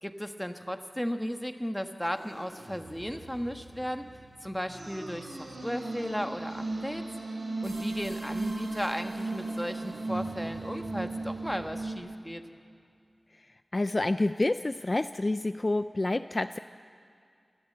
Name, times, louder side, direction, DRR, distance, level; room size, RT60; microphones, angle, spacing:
voice 1, 0.0-4.1 4.4-7.0 7.6-12.4, equal, 5° left, 6 dB, 1.3 m, -35 dB
sound 1, 2.2-12.0, right 2 dB, 80° right, 3.5 m, -37 dB
voice 2, 13.7-16.6, left 2 dB, 40° left, 10 dB, 0.4 m, -28 dB
27.5 x 12.5 x 7.8 m, 2.4 s
wide cardioid pair, 65°, 0 cm